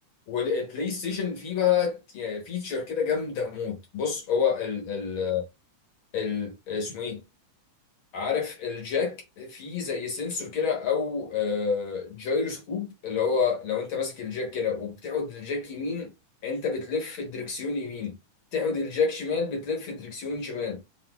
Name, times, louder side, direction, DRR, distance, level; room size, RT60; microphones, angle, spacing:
voice 1, 0.3-5.4 6.1-7.2 8.1-16.1 16.4-18.2 18.5-20.8, left 6 dB, 60° left, 1.3 m, -29 dB
5.8 x 2.7 x 2.3 m
omnidirectional pair, 3.6 m